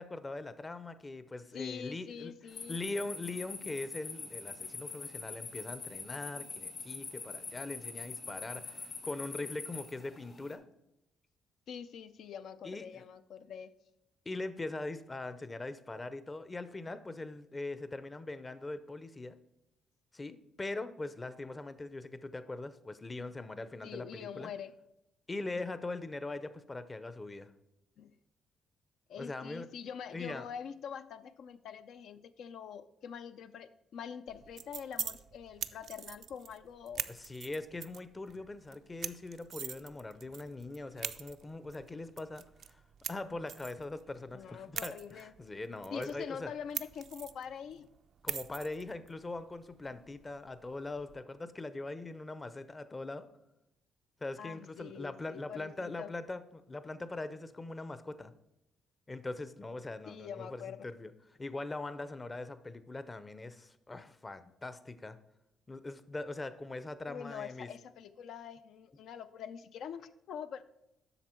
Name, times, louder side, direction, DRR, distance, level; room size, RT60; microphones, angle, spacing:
voice 1, 0.0-2.3 2.7-10.6 12.6-13.0 14.3-19.4 20.1-24.5 25.3-27.5 29.2-29.7 30.1-30.5 37.1-42.4 42.7-42.8 43.1-46.5 48.2-53.3 54.2-58.3 59.1-61.1 61.4-65.2 65.7-67.7, left 2 dB, 25° left, 13 dB, 0.6 m, -41 dB
voice 2, 1.5-2.8 11.7-13.7 23.8-24.7 28.0-28.2 29.1-37.1 44.3-45.3 45.9-47.9 54.4-56.1 60.1-60.9 67.1-70.6, left 7 dB, 75° left, 11 dB, 0.4 m, -44 dB
sound 1, 2.5-10.5, left 4 dB, 60° left, 1.8 m, -44 dB
sound 2, 34.3-51.2, right 8 dB, 65° right, 0.4 m, -45 dB
8.0 x 6.0 x 4.4 m, 0.87 s
cardioid pair, 90°, 0 cm